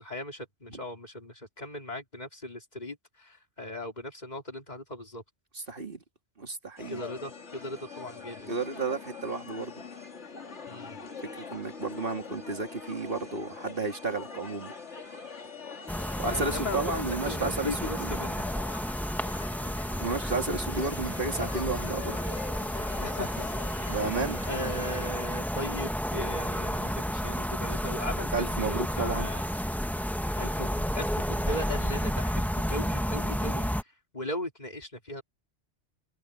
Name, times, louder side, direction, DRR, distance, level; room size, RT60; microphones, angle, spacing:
voice 1, 0.0-5.2 6.9-8.5 10.7-11.0 16.3-18.5 23.0-23.5 23.8-24.0 24.5-29.5 30.4-33.7 34.1-35.2, left 1 dB, 40° left, 3.6 m, -38 dB
voice 2, 5.5-6.0 6.4-7.0 8.5-9.7 11.5-14.7 16.2-18.2 20.0-22.2 23.9-24.4 28.3-29.3, right 3 dB, 50° right, 2.6 m, -32 dB
sound 1, 6.8-25.1, left 4 dB, 85° left, 2.4 m, -43 dB
sound 2, 15.9-33.8, equal, ahead, 0.9 m, -31 dB
omnidirectional pair, 1.2 m